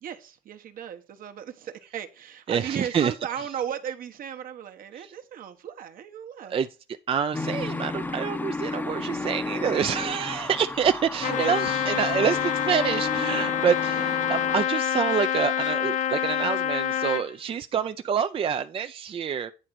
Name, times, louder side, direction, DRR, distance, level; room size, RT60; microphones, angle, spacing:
voice 1, 0.0-6.6 11.3-11.7, right 9 dB, 55° right, 1.1 m, -36 dB
voice 2, 2.5-3.1 5.0-5.1 6.5-6.7 7.1-19.5, right 7 dB, 35° right, 0.4 m, -27 dB
sound 1, 7.3-14.6, left 2 dB, 10° left, 0.7 m, -33 dB
Trumpet, 11.2-17.3, left 10 dB, 45° left, 0.4 m, -27 dB
9.4 x 3.7 x 5.9 m
cardioid pair, 110°, 17 cm